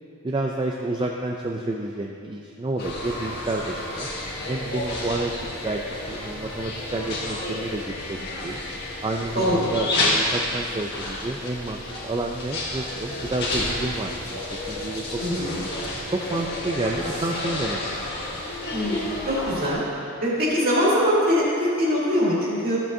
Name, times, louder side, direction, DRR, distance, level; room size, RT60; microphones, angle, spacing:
voice 1, 0.2-4.1 4.5-5.3 5.6-8.6 9.0-14.4 14.7-15.5 16.1-18.2, right 2 dB, 20° right, 0 dB, 0.3 m, -30 dB
sound 1, 2.8-19.7, left 1 dB, 45° left, 1.7 m, -30 dB
voice 2, 9.4-9.7 15.2-15.6 18.7-19.8 20.2-22.8, equal, 40° right, -7 dB, 2.3 m, -23 dB
13.5 x 7.5 x 2.7 m, 2.6 s
head